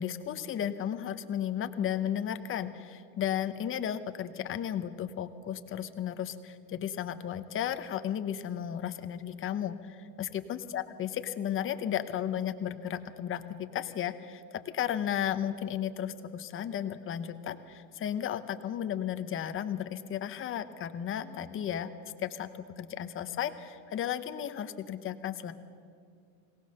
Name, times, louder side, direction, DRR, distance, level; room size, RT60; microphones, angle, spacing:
voice 1, 0.0-11.1 11.4-21.9 22.2-22.5 22.8-25.5, left 10 dB, 25° left, 10 dB, 0.9 m, -34 dB
22.5 x 18.5 x 6.6 m, 2.3 s
cardioid pair, 155°, 47 cm